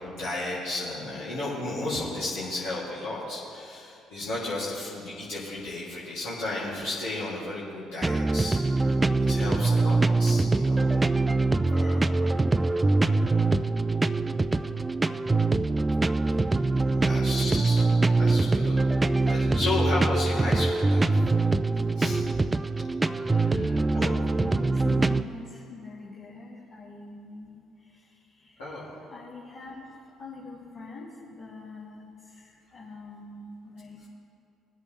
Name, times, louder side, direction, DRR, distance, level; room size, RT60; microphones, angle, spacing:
voice 1, 0.0-9.0 9.3-10.9 11.6-13.4 14.4-14.7 17.0-17.8 18.1-18.8 19.2-21.3 21.9-22.3 23.1-24.1 28.6-28.9, left 2 dB, 80° left, -11 dB, 3.0 m, -34 dB
sound 1, 8.0-25.2, right 3 dB, 20° right, 0.4 m, -24 dB
voice 2, 23.5-29.8 30.2-34.0, left 3 dB, 50° left, -7 dB, 2.3 m, -44 dB
20.0 x 8.1 x 3.5 m, 2.5 s
hypercardioid pair, 55°, 0 cm